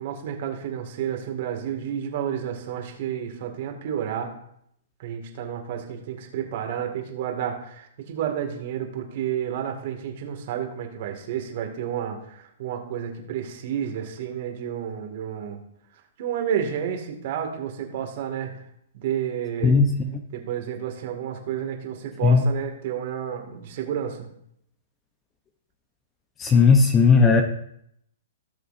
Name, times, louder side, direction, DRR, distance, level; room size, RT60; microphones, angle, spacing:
voice 1, 0.0-4.3 5.0-15.6 16.2-18.5 18.9-19.8 20.3-24.3, right 9 dB, 55° right, 3 dB, 2.4 m, -30 dB
voice 2, 26.4-27.4, left 5 dB, 20° left, 5 dB, 0.9 m, -16 dB
17.5 x 6.8 x 2.8 m, 0.73 s
hypercardioid pair, 140°, 0 cm